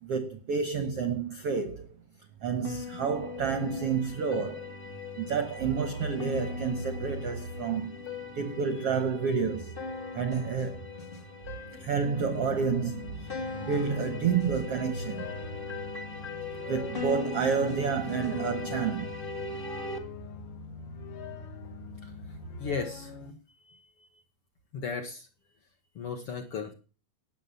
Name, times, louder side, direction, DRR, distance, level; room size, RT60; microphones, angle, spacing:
voice 1, 0.0-1.9 2.4-4.7 5.2-8.0 8.3-9.7 10.1-10.8 11.7-13.3 13.7-15.3 16.7-19.1, right 6 dB, 65° right, 1.5 m, -29 dB
sound 1, 2.6-20.0, left 4 dB, 25° left, 1.1 m, -40 dB
sound 2, 11.6-23.3, left 6 dB, 75° left, 3.6 m, -43 dB
voice 2, 22.6-23.1 23.7-24.1 24.7-25.3 26.0-26.7, left 5 dB, 50° left, 1.9 m, -36 dB
18.0 x 7.7 x 7.0 m
omnidirectional pair, 4.4 m